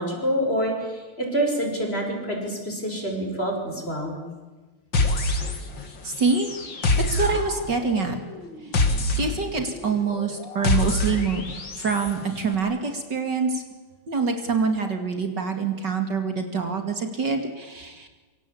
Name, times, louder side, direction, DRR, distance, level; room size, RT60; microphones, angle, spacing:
voice 1, 0.0-4.2, right 1 dB, 25° left, 2 dB, 6.3 m, -27 dB
sound 1, 4.9-5.9 6.1-12.1, left 2 dB, 60° left, 3.4 m, -26 dB
voice 2, 6.0-6.5 7.1-8.2 9.2-11.4 11.8-13.6 14.1-18.1, right 4 dB, 55° right, 5 dB, 2.9 m, -25 dB
27.0 x 25.0 x 8.6 m, 1.3 s
omnidirectional pair, 2.3 m